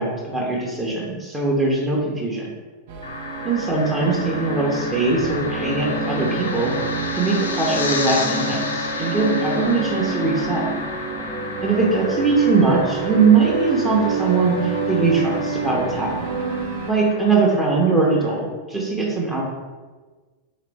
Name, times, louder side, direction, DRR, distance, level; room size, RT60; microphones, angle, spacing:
voice 1, 0.0-2.5 3.4-6.7 7.2-10.7 11.6-16.3 16.9-19.4, right 4 dB, 15° right, -3 dB, 0.7 m, -21 dB
sound 1, 2.9-16.9, right 3 dB, 55° right, 0.6 m, -28 dB
sound 2, 3.0-18.3, left 3 dB, 75° left, 0.4 m, -32 dB
3.3 x 2.9 x 3.3 m, 1.3 s
figure-of-eight pair, 90°, 0 cm